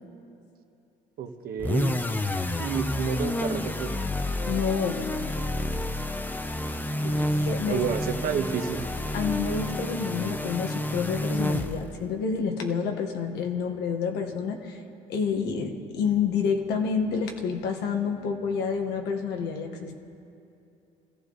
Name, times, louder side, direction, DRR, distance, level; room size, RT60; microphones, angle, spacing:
voice 1, 1.2-2.1 2.5-3.9 7.0-8.8, right 7 dB, 65° right, 5 dB, 1.3 m, -30 dB
sound 1, 1.6-12.0, left 1 dB, 10° left, 0.7 m, -29 dB
voice 2, 4.5-5.1 7.5-7.9 9.1-14.8 15.1-20.0, left 6 dB, 85° left, 4 dB, 1.5 m, -28 dB
24.5 x 14.5 x 4.0 m, 2.7 s
cardioid pair, 110°, 17 cm